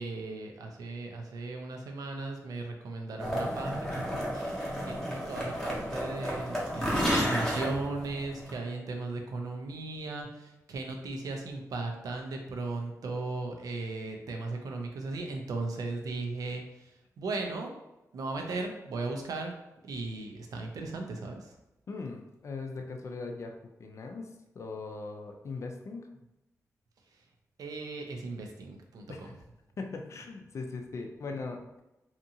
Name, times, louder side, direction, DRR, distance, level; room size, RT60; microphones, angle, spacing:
voice 1, 0.0-17.7 18.1-19.6 19.8-21.5 27.6-29.3, right 3 dB, 85° right, 3 dB, 0.5 m, -37 dB
sound 1, 3.2-8.5, equal, 10° left, 0.7 m, -32 dB
voice 2, 21.9-23.5 23.8-24.3 24.5-26.1 29.1-29.4 29.8-31.8, left 3 dB, 50° left, 3 dB, 0.4 m, -39 dB
2.8 x 2.4 x 2.7 m, 0.93 s
wide cardioid pair, 155°, 6 cm